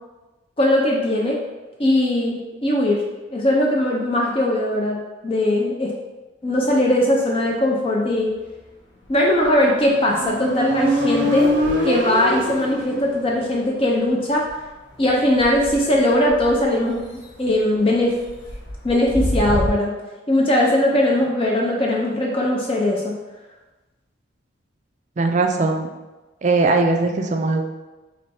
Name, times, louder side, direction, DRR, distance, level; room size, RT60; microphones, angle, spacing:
voice 1, 0.6-1.4 1.8-3.0 3.3-5.0 5.2-5.9 6.4-8.3 9.1-11.5 11.8-14.5 15.0-17.0 17.4-18.1 18.8-19.9 20.3-23.1, left 1 dB, 30° left, -2 dB, 0.4 m, -19 dB
sound 1, 6.4-7.7 8.0-19.7, equal, 60° left, 1.1 m, -35 dB
Motorcycle, 9.7-13.4, equal, 75° right, 0.6 m, -23 dB
voice 2, 25.2-25.9 26.4-27.6, right 3 dB, 35° right, 4 dB, 0.4 m, -19 dB
3.3 x 3.1 x 4.2 m, 1.1 s
head